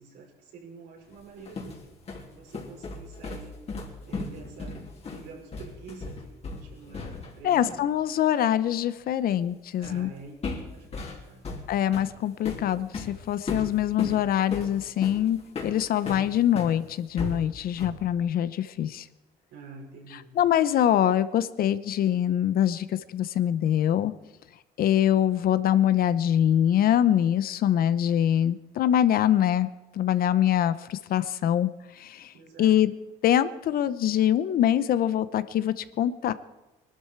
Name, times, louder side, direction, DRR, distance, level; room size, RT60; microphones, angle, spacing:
voice 1, 0.0-1.8 2.3-3.6 4.1-4.8 5.1-7.8 9.8-11.4 19.5-20.4 32.3-32.7, right 4 dB, 80° right, -2 dB, 5.9 m, -47 dB
sound 1, 1.2-7.4 7.7-7.9 9.8-10.1 10.4-16.8 17.2-18.1, left 3 dB, 40° left, 3.1 m, -36 dB
voice 2, 7.4-10.1 11.7-19.1 20.4-24.1 24.8-32.3 32.6-32.9 33.2-36.3, left 10 dB, 60° left, 15 dB, 0.8 m, -24 dB
20.0 x 12.5 x 4.6 m, 1.1 s
cardioid pair, 110°, 17 cm